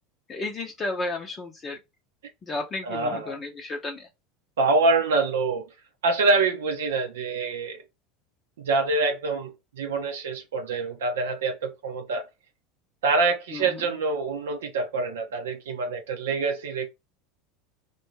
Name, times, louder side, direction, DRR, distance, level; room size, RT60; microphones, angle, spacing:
voice 1, 0.3-1.8 2.4-4.1 13.5-13.8, left 2 dB, 30° left, 0.6 m, -33 dB
voice 2, 2.8-3.3 4.6-5.7 6.0-7.8 8.6-12.2 13.0-16.9, right 3 dB, 80° right, 0.6 m, -25 dB
2.6 x 2.2 x 2.9 m
hypercardioid pair, 85°, 0 cm